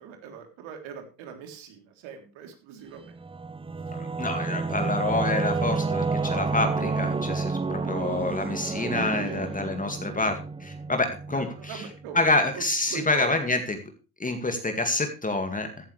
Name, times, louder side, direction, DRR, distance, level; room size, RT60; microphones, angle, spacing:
voice 1, 0.0-3.2 9.0-9.5 11.3-12.2 12.5-13.3, right 7 dB, 70° right, 4 dB, 3.6 m, -41 dB
Singing / Musical instrument, 3.1-12.2, right 4 dB, 10° right, 0.6 m, -30 dB
voice 2, 3.9-11.8 12.1-13.8 14.2-15.7, left 2 dB, 15° left, 5 dB, 2.2 m, -27 dB
15.0 x 11.0 x 3.4 m, 0.34 s
hypercardioid pair, 80°, 48 cm